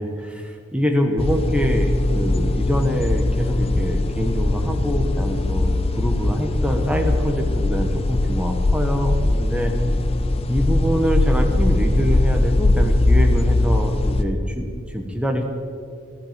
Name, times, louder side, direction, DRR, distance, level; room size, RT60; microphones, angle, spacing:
voice 1, 0.3-9.7 10.5-15.4, equal, 5° right, 3 dB, 1.1 m, -24 dB
sound 1, 1.2-14.2, left 2 dB, 30° left, 0.5 m, -20 dB
13.5 x 12.5 x 5.1 m, 2.4 s
head